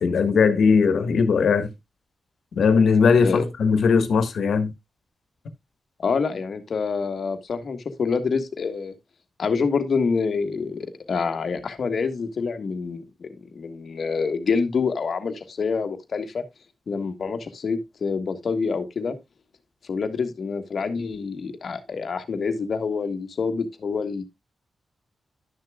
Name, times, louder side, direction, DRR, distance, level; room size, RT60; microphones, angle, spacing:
voice 1, 0.0-1.7 2.5-4.7, left 5 dB, 75° left, 1.4 m, -19 dB
voice 2, 6.0-8.9 9.4-16.4 16.9-19.2 19.9-24.2, left 5 dB, 60° left, 1.3 m, -27 dB
11.5 x 6.6 x 2.3 m
wide cardioid pair, 100°, 0 cm